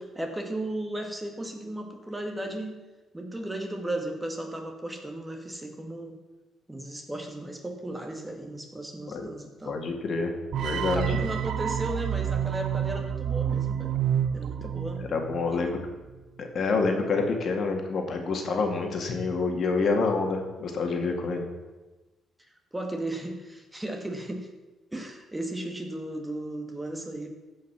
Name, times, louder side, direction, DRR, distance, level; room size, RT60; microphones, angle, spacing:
voice 1, 0.0-2.8 3.1-6.2 6.7-9.8 10.9-13.9 14.3-15.0 15.5-15.6 22.7-24.5 24.9-27.3, right 1 dB, 15° right, 3 dB, 1.8 m, -35 dB
voice 2, 9.7-11.2 15.0-15.8 16.4-21.5, left 4 dB, 55° left, 3 dB, 2.1 m, -27 dB
sound 1, 10.5-15.6, right 9 dB, 70° right, 0.5 m, -29 dB
15.0 x 5.6 x 6.0 m, 1.2 s
cardioid pair, 90°, 0 cm